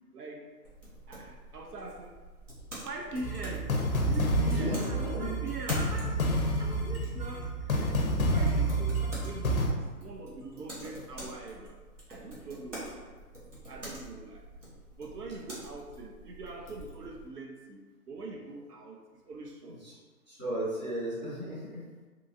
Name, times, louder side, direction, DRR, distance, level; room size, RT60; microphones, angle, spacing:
voice 1, 0.1-0.5 1.1-2.1 2.8-3.7 4.1-6.2 6.6-8.0 8.3-11.8 12.1-13.1 13.7-14.4 15.0-17.8 18.1-19.8, right 2 dB, 80° right, 1 dB, 0.6 m, -43 dB
sound 1, 0.6-17.3, right 1 dB, 50° right, 1.1 m, -46 dB
sound 2, 3.2-9.7, right 1 dB, 65° left, 0.5 m, -29 dB
voice 2, 4.4-5.3 20.3-21.8, right 1 dB, 30° right, -11 dB, 0.7 m, -34 dB
3.0 x 2.2 x 2.4 m, 1.3 s
hypercardioid pair, 175°, 47 cm